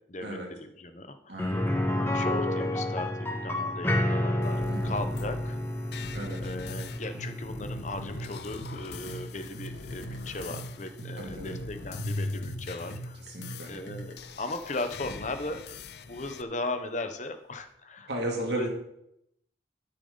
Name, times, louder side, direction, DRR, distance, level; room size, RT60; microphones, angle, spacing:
voice 1, 0.1-1.4 2.1-5.6 6.4-13.2 13.7-15.6 16.0-18.7, left 2 dB, 40° left, 8 dB, 1.0 m, -37 dB
voice 2, 1.3-1.6 4.7-5.0 6.1-6.4 11.2-11.6 13.3-13.7 18.1-18.7, right 1 dB, 70° right, 0 dB, 2.5 m, -34 dB
sound 1, 1.4-11.2 11.5-11.6 14.0-14.1, left 1 dB, 10° left, 1.3 m, -31 dB
sound 2, 4.4-16.4, left 3 dB, 65° left, 0.6 m, -41 dB
sound 3, 6.7-14.2, right 2 dB, 85° left, 2.2 m, -42 dB
13.5 x 6.8 x 4.0 m, 0.79 s
head